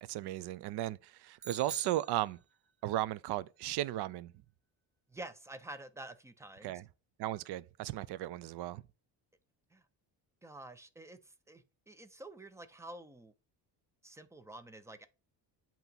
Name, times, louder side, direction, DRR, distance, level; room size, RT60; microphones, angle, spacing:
voice 1, 0.0-2.4 2.8-4.3 6.6-6.8 7.2-8.8, right 14 dB, 65° right, 0.5 m, -35 dB
sound 1, 1.4-2.9, right 4 dB, 30° right, 0.9 m, -47 dB
voice 2, 5.1-6.8 9.7-9.9 10.4-13.3 14.0-15.1, right 2 dB, 5° right, 0.4 m, -49 dB
8.1 x 3.0 x 5.2 m
cardioid pair, 140°, 42 cm